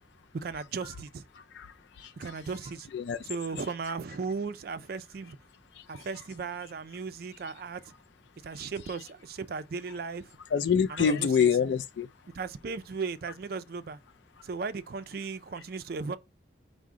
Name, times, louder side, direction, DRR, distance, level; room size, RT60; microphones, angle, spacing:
voice 1, 0.3-1.2 2.2-2.9 3.2-5.4 5.9-7.9 8.4-10.4 10.9-11.5 12.3-14.0 14.4-16.2, right 4 dB, 50° right, 0.4 m, -36 dB
voice 2, 1.4-1.7 2.0-2.1 2.9-3.2 5.9-6.0 10.5-12.1, left 7 dB, 65° left, 0.3 m, -26 dB
4.8 x 2.1 x 3.6 m
head